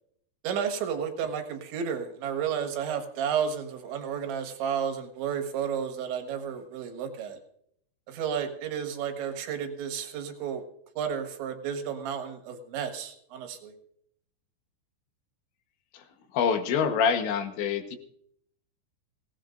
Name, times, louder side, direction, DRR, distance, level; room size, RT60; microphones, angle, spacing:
voice 1, 0.4-7.4 8.1-10.6 11.0-13.7, right 7 dB, 85° right, 5 dB, 3.9 m, -32 dB
voice 2, 16.3-18.0, left 6 dB, 80° left, 7 dB, 3.6 m, -26 dB
23.5 x 17.5 x 2.6 m, 0.70 s
omnidirectional pair, 5.1 m